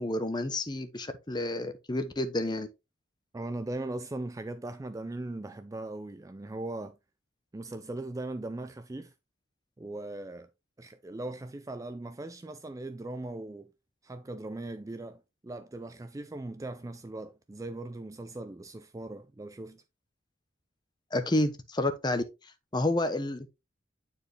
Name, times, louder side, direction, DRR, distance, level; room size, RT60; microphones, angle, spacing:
voice 1, 0.0-2.7 21.1-22.2 22.7-23.5, left 1 dB, 20° left, 0.8 m, -29 dB
voice 2, 3.3-7.0 7.5-9.1 9.8-10.5 10.8-13.7 14.0-19.8, right 2 dB, 15° right, 0.3 m, -39 dB
9.3 x 4.3 x 3.2 m
head